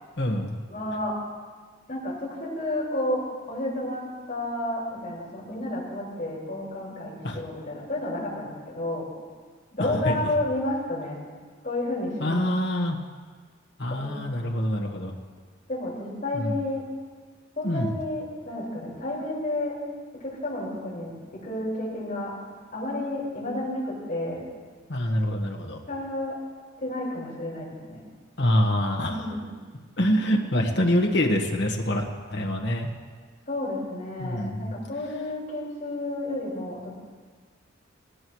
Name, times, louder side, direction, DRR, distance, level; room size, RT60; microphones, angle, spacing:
voice 1, 0.2-0.6 7.2-7.4 9.8-10.3 12.2-13.0 13.8-15.1 16.3-16.6 17.6-18.0 24.9-25.8 28.4-29.2 30.0-32.0 32.3-32.9 34.2-34.7, left 1 dB, 60° left, 1 dB, 1.4 m, -25 dB
voice 2, 0.7-1.2 1.9-9.1 9.7-11.2 11.6-12.4 13.9-14.7 15.7-16.8 17.6-19.8 20.2-22.3 22.7-24.4 25.9-26.3 26.8-28.0 29.0-29.4 30.1-30.2 33.5-37.1, left 1 dB, 40° left, -6 dB, 5.1 m, -31 dB
18.0 x 17.0 x 3.2 m, 1.5 s
head